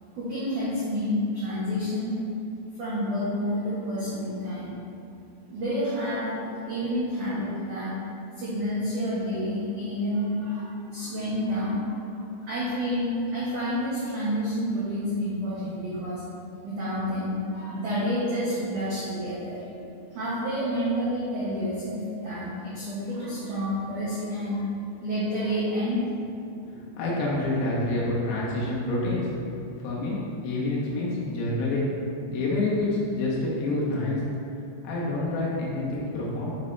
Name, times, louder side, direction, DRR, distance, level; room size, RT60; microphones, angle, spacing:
voice 1, 0.1-2.1 2.8-4.7 5.4-8.0 8.4-16.2 16.6-19.7 20.1-24.6 25.0-26.0, equal, 85° right, -11 dB, 1.7 m, -29 dB
voice 2, 27.0-29.3 29.8-30.1 30.4-31.9 32.3-34.2 34.8-36.5, left 2 dB, 90° left, -6 dB, 4.0 m, -27 dB
10.5 x 4.0 x 3.3 m, 2.7 s
omnidirectional pair, 5.7 m